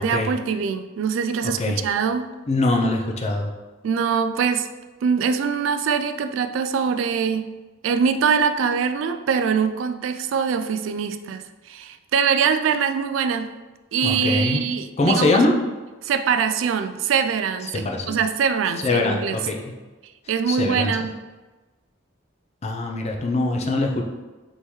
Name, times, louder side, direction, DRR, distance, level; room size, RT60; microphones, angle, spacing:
voice 1, 0.0-2.3 3.8-4.7 5.0-7.5 7.8-11.4 11.7-13.5 13.9-15.4 16.0-19.4 20.3-21.1, right 6 dB, 70° right, 9 dB, 0.3 m, -23 dB
voice 2, 1.4-1.8 2.5-3.5 14.0-14.6 15.0-15.5 17.7-18.2 18.8-19.6 20.5-20.9 22.6-24.0, left 2 dB, 35° left, 2 dB, 0.5 m, -22 dB
4.1 x 3.6 x 3.1 m, 1.2 s
head